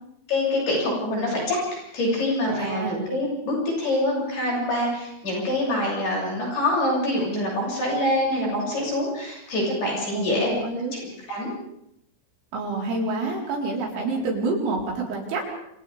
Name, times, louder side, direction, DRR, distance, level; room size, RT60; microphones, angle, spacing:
voice 1, 0.3-10.6 10.9-11.5, left 1 dB, 50° left, -3 dB, 9.0 m, -25 dB
voice 2, 2.5-3.0 10.1-10.9 12.5-15.4, right 3 dB, 65° right, -1 dB, 6.6 m, -28 dB
30.0 x 27.5 x 3.6 m, 0.77 s
omnidirectional pair, 6.0 m